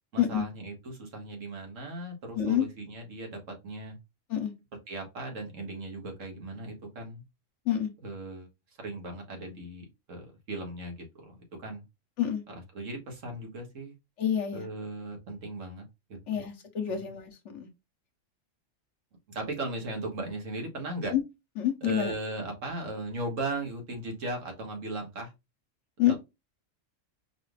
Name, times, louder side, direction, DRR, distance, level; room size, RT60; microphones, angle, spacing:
voice 1, 0.1-4.0 4.9-7.2 8.0-8.5 8.8-11.3 11.6-11.8 12.5-13.9 14.5-15.9 16.3-16.4 16.9-17.0 19.3-21.1 21.8-25.3 26.1-26.2, right 2 dB, 80° right, 1.6 m, -37 dB
voice 2, 2.3-2.7 4.3-4.5 7.7-7.9 12.2-12.4 14.2-14.7 16.3-17.7 21.1-21.2 21.6-22.1 26.0-26.1, left 10 dB, 70° left, 1.0 m, -27 dB
4.7 x 2.4 x 3.2 m
omnidirectional pair, 1.3 m